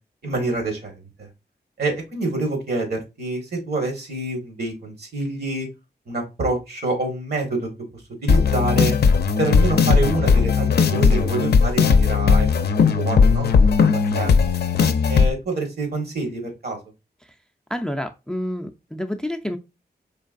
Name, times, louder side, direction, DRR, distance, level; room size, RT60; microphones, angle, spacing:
voice 1, 0.2-1.3 1.8-5.7 6.1-8.9 9.4-12.5 12.9-13.5 13.9-14.6 15.1-16.8, right 2 dB, 70° right, 1.6 m, -27 dB
sound 1, 8.3-15.3, left 5 dB, 70° left, 0.5 m, -17 dB
voice 2, 17.7-19.6, left 1 dB, 5° left, 0.4 m, -28 dB
4.5 x 3.2 x 2.5 m
wide cardioid pair, 85°, 17 cm